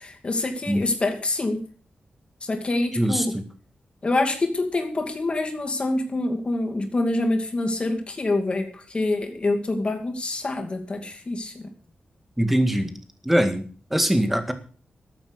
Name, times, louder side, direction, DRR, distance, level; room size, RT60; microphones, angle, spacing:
voice 1, 0.0-1.6 2.4-3.3 4.0-11.7, left 2 dB, 35° left, 5 dB, 2.4 m, -26 dB
voice 2, 3.0-3.4 12.4-12.9 13.3-14.5, equal, 5° right, 7 dB, 1.9 m, -22 dB
13.5 x 8.9 x 6.5 m, 0.41 s
wide cardioid pair, 115°, 3 cm